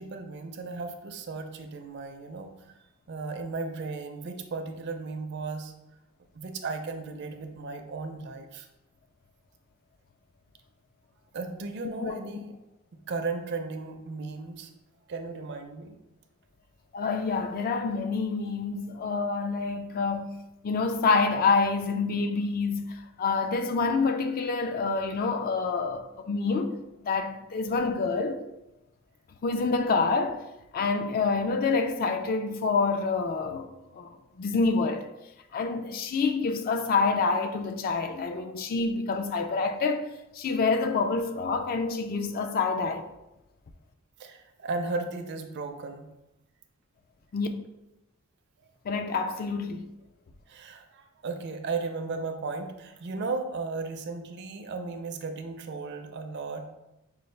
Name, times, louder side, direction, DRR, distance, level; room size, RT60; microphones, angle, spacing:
voice 1, 0.0-2.8 3.1-5.7 6.3-8.7 11.3-12.5 12.9-14.7 15.1-15.9 44.2-46.1 50.5-56.7, right 3 dB, 50° right, 0.4 m, -35 dB
voice 2, 16.9-26.8 27.0-28.4 29.4-30.4 30.7-34.1 34.4-35.1 35.5-43.1 47.3-47.5 48.9-49.9, left 4 dB, 40° left, 0.3 m, -27 dB
5.4 x 2.3 x 3.2 m
head